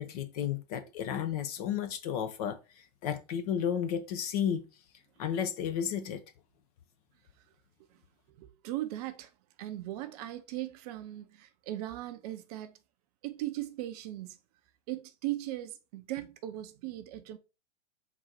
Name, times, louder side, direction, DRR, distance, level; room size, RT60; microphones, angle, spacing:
voice 1, 0.0-4.6 5.2-6.2, left 8 dB, 35° left, 0.5 m, -33 dB
voice 2, 8.3-9.3 9.6-12.8 13.2-14.4 14.9-17.4, right 15 dB, 35° right, 0.5 m, -38 dB
3.9 x 2.6 x 4.5 m
hypercardioid pair, 115°, 36 cm